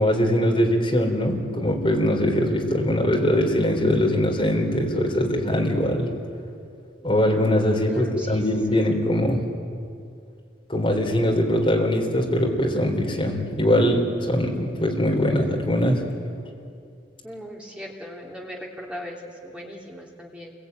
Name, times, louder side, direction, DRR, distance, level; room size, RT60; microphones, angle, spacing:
voice 1, 0.0-6.1 7.0-9.4 10.7-16.0, left 1 dB, 30° left, 0 dB, 3.8 m, -22 dB
voice 2, 7.8-8.8 17.2-20.5, equal, 5° right, -1 dB, 2.9 m, -39 dB
28.5 x 22.5 x 9.3 m, 2.4 s
head